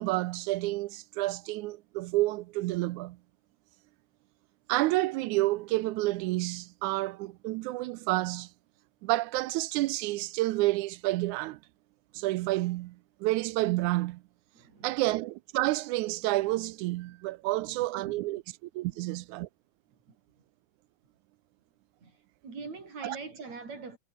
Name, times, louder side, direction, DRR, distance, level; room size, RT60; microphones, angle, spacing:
voice 1, 0.0-3.2 4.7-8.5 9.0-11.6 12.1-14.2 14.8-19.5 23.0-23.2, right 18 dB, 80° right, 2.0 m, -29 dB
voice 2, 14.5-15.0 17.7-18.4 18.9-19.2 20.1-20.4 22.0-24.0, right 4 dB, 60° right, 6.6 m, -45 dB
omnidirectional pair, 3.6 m